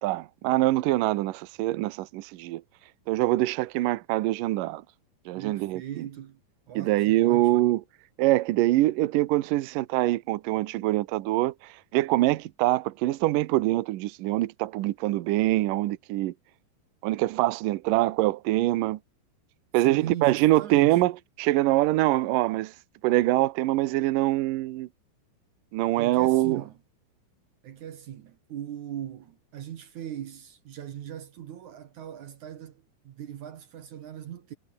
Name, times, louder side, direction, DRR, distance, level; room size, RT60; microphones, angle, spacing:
voice 1, 0.0-2.6 3.1-4.8 5.3-5.8 6.8-7.8 8.2-16.3 17.0-19.0 19.7-21.1 21.4-22.7 23.0-24.9 25.7-26.6, right 17 dB, 85° right, 1.9 m, -24 dB
voice 2, 5.4-6.4 6.7-7.7 19.8-21.0 26.0-26.8 27.6-34.5, right 10 dB, 65° right, 2.0 m, -39 dB
omnidirectional pair, 5.2 m